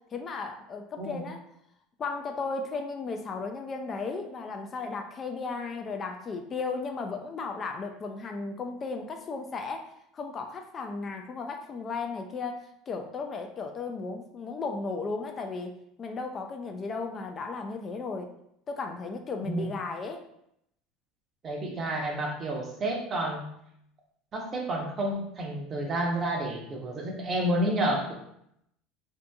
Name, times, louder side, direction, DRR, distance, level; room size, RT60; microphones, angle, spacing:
voice 1, 0.1-1.4 2.0-9.9 10.1-15.7 16.0-18.3 18.7-20.2, left 4 dB, 35° left, 4 dB, 0.3 m, -35 dB
voice 2, 21.4-23.5 24.3-28.2, right 1 dB, 35° right, 0 dB, 0.7 m, -30 dB
2.6 x 2.6 x 2.2 m, 0.74 s
supercardioid pair, 105°, 0 cm